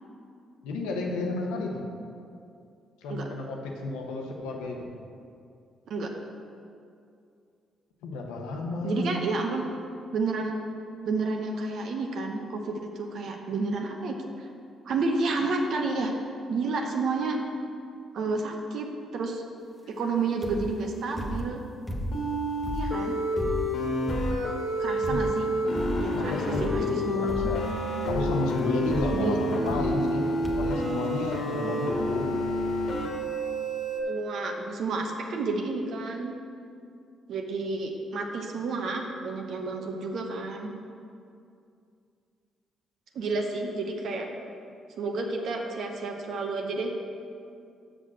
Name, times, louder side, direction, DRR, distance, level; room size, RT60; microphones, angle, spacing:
voice 1, 0.6-1.8 3.0-4.9 8.0-9.3 25.0-25.2 26.1-27.7 28.1-30.3 30.6-32.3, left 2 dB, 85° left, 1 dB, 0.9 m, -32 dB
voice 2, 8.8-9.6 10.1-10.5 11.0-14.5 14.8-16.1 16.5-17.4 18.1-18.9 19.1-19.4 19.9-21.6 22.7-23.2 24.8-25.5 26.0-27.5 29.1-29.4 31.6-31.8 34.1-36.4 37.3-40.7 43.1-44.3 45.0-47.0, right 3 dB, 65° right, 2 dB, 0.9 m, -30 dB
sound 1, 20.4-20.8 21.2-22.3 22.6-24.6 25.0-25.5 25.7-26.2 26.5-26.9 27.3-27.8 28.1-28.5 28.9-29.2 29.7-30.2 30.4-30.8 31.5-31.6 31.8-31.9, equal, ahead, 1.1 m, -34 dB
sound 2, 22.1-34.0, equal, 70° left, 1.5 m, -29 dB
6.4 x 6.1 x 6.2 m, 2.4 s
hypercardioid pair, 50°, 0 cm